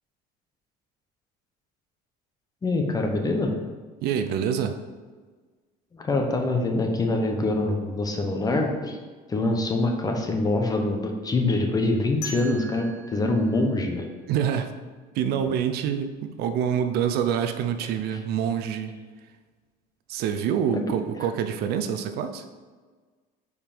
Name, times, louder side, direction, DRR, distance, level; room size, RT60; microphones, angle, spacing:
voice 1, 2.6-3.6 5.9-9.0 9.3-14.1, left 2 dB, 20° left, 3 dB, 0.9 m, -24 dB
voice 2, 4.0-4.8 14.3-14.7 15.1-19.0 20.1-22.4, right 8 dB, 65° right, 8 dB, 0.6 m, -26 dB
sound 1, 12.2-15.1, left 2 dB, 70° left, 1.5 m, -42 dB
5.4 x 4.8 x 5.1 m, 1.4 s
cardioid pair, 125°, 18 cm